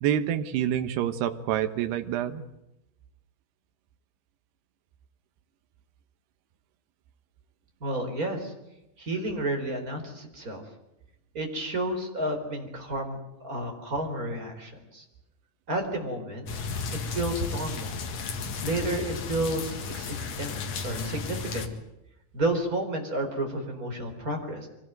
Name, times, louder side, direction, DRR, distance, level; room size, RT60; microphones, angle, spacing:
voice 1, 0.0-2.4, right 10 dB, 80° right, 9 dB, 3.3 m, -27 dB
voice 2, 7.8-8.5 9.0-10.6 11.3-13.2 13.4-15.0 15.7-16.5 17.1-17.9 18.6-21.7 22.3-24.7, right 1 dB, 20° right, 3 dB, 4.2 m, -31 dB
sound 1, 16.5-21.7, left 5 dB, 50° left, 2.4 m, -34 dB
24.5 x 18.5 x 9.2 m, 0.91 s
omnidirectional pair, 4.7 m